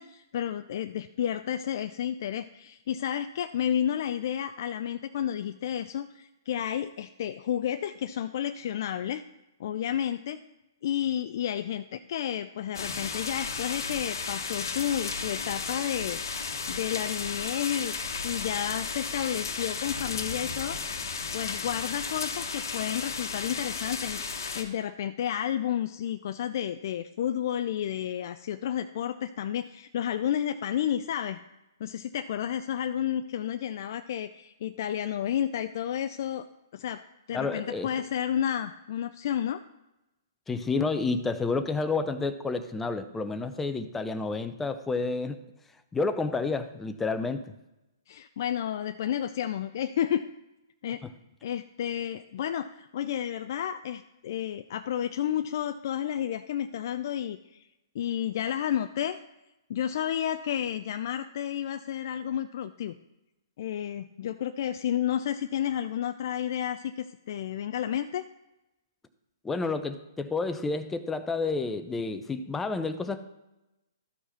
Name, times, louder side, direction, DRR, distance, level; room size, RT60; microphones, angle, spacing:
voice 1, 0.0-9.2 9.6-10.4 10.8-16.2 16.7-18.0 18.2-20.8 21.3-24.2 24.5-31.4 31.8-36.5 36.7-37.0 37.3-39.6 48.1-50.3 50.8-51.0 51.4-57.6 57.9-59.2 59.7-63.0 63.6-68.2, left 10 dB, 55° left, 9 dB, 0.3 m, -31 dB
sound 1, 12.7-24.6, left 5 dB, 75° left, 1.2 m, -34 dB
voice 2, 37.3-37.9 40.5-45.4 45.9-47.5 51.0-51.1 69.4-73.2, left 3 dB, 10° left, 9 dB, 0.6 m, -30 dB
13.0 x 4.7 x 4.3 m, 0.97 s
hypercardioid pair, 135°, 2 cm